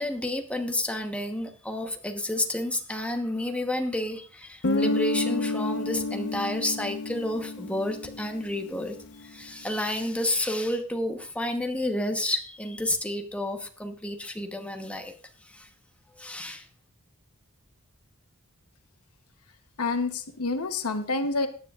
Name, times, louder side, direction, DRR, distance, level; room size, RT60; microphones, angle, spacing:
voice 1, 0.0-15.1 15.5-15.7 16.2-16.6, left 1 dB, 5° left, 4 dB, 1.0 m, -30 dB
Guitar, 4.6-9.2, left 2 dB, 55° left, 0.9 m, -30 dB
voice 2, 19.8-21.5, left 3 dB, 80° left, 8 dB, 1.0 m, -28 dB
16.0 x 9.9 x 2.4 m, 0.39 s
head